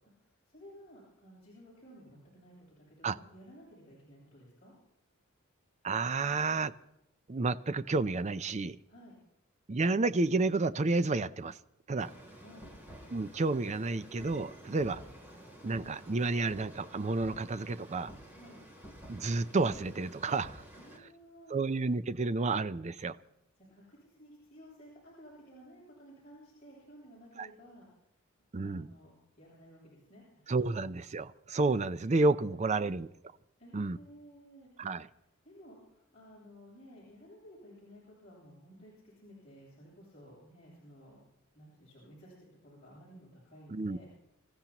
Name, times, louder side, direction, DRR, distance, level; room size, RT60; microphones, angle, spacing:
voice 1, 0.2-4.7 8.9-9.2 12.4-12.7 18.2-18.6 20.8-21.6 23.6-27.9 28.6-30.5 33.6-34.7 35.4-41.2 41.5-44.1, equal, 30° left, -8 dB, 7.9 m, -55 dB
voice 2, 5.8-6.7 7.3-8.8 9.7-11.6 11.9-12.1 13.1-15.0 15.6-18.1 19.1-20.6 21.5-23.2 27.4-27.5 28.5-28.9 30.5-33.1 33.7-34.0 34.8-35.1 43.7-44.0, right 3 dB, 35° right, 13 dB, 0.5 m, -30 dB
sound 1, 12.0-21.0, equal, 10° right, 3.0 m, -51 dB
27.5 x 15.0 x 3.0 m, 0.84 s
head